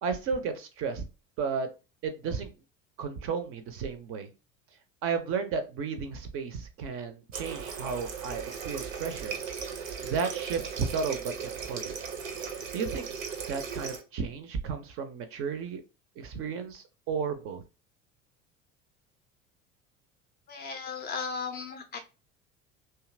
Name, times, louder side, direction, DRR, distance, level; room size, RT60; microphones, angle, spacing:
voice 1, 0.0-1.0 1.4-1.7 2.0-2.5 3.0-4.3 5.0-9.4 9.7-12.0 12.7-13.1 13.5-15.8 16.2-17.6, right 5 dB, 35° right, 8 dB, 0.4 m, -33 dB
Water tap faucet, 7.3-14.0, right 6 dB, 75° right, 0.6 m, -37 dB
voice 2, 20.5-22.0, left 5 dB, 25° left, 4 dB, 0.4 m, -36 dB
2.7 x 2.3 x 2.5 m, 0.30 s
figure-of-eight pair, 65°, 39 cm